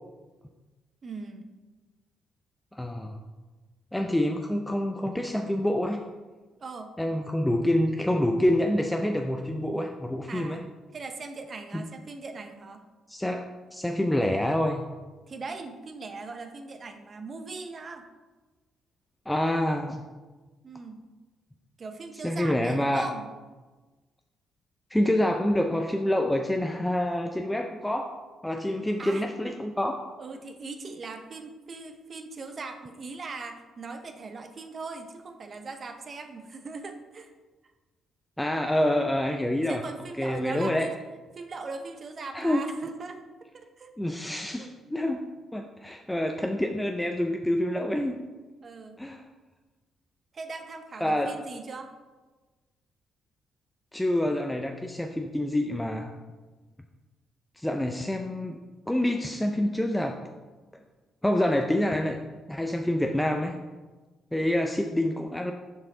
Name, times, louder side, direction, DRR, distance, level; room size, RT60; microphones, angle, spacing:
voice 1, 1.0-1.5 6.6-7.0 10.3-12.9 15.3-18.1 20.6-21.1 21.8-23.3 29.0-29.2 30.2-37.3 39.7-40.9 41.3-43.2 43.5-43.9 44.6-44.7 48.6-49.0 50.3-51.9, right 3 dB, 40° right, 6 dB, 0.6 m, -40 dB
voice 2, 2.7-3.2 3.9-6.0 7.0-10.6 11.7-11.8 13.1-13.4 13.7-14.9 19.3-20.0 22.2-23.1 24.9-28.1 28.4-30.0 38.4-39.8 40.2-40.9 42.3-42.6 44.0-45.2 45.5-48.2 49.0-49.2 51.0-51.3 53.9-56.1 57.6-58.6 58.9-60.2 61.2-62.2 62.5-63.5 64.3-65.5, left 1 dB, 5° left, 3 dB, 0.4 m, -27 dB
6.1 x 4.5 x 3.8 m, 1.3 s
cardioid pair, 90°, 0 cm